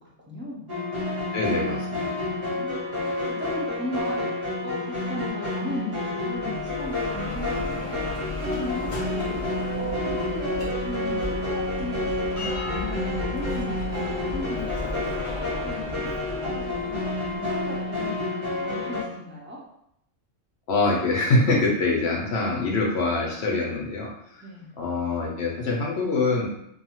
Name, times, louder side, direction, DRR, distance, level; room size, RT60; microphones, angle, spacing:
voice 1, 0.3-0.7 2.3-8.0 8.4-9.4 9.8-19.6 24.4-24.8, left 1 dB, 15° right, -6 dB, 0.4 m, -36 dB
sound 1, 0.7-19.0, left 2 dB, 35° right, 0.8 m, -29 dB
voice 2, 1.3-2.3 20.7-24.4 24.8-26.5, left 3 dB, 65° left, -1 dB, 0.8 m, -24 dB
Bell, 6.2-18.0, left 1 dB, 50° left, 0.4 m, -35 dB
2.6 x 2.3 x 2.9 m, 0.76 s
omnidirectional pair, 1.3 m